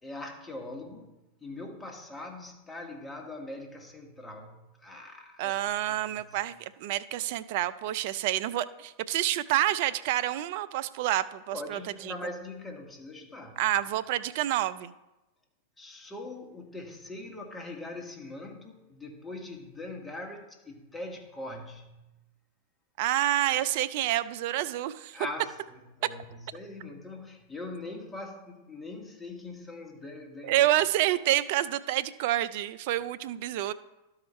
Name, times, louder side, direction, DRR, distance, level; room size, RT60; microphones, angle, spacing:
voice 1, 0.0-5.6 5.9-6.4 11.5-13.6 15.8-22.2 25.1-30.7, left 2 dB, 10° left, 1.6 m, -42 dB
voice 2, 5.4-11.8 12.1-12.2 13.6-14.9 23.0-25.2 30.4-33.7, right 14 dB, 55° right, 0.4 m, -28 dB
12.5 x 4.8 x 4.3 m
hypercardioid pair, 95°, 0 cm